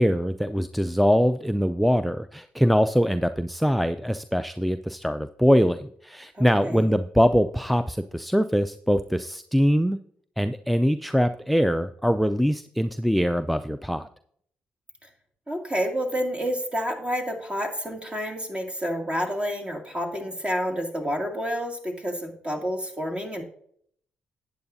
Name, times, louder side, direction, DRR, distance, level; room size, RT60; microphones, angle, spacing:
voice 1, 0.0-10.0 10.4-14.1, equal, ahead, 9 dB, 0.4 m, -23 dB
voice 2, 6.3-6.9 15.5-23.4, equal, 30° right, 2 dB, 2.4 m, -29 dB
12.0 x 8.7 x 2.7 m, 0.64 s
supercardioid pair, 60°, 4 cm